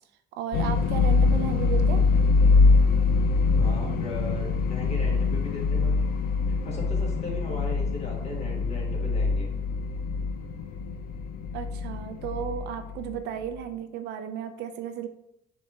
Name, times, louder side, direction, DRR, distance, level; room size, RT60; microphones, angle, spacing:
voice 1, 0.3-2.1 11.5-15.1, right 8 dB, 80° right, 8 dB, 0.5 m, -34 dB
sound 1, 0.5-13.4, left 4 dB, 60° left, 0.5 m, -24 dB
voice 2, 3.5-6.0 6.6-9.5, left 1 dB, 40° left, -1 dB, 1.5 m, -37 dB
4.1 x 3.7 x 3.5 m, 0.79 s
cardioid pair, 110°, 17 cm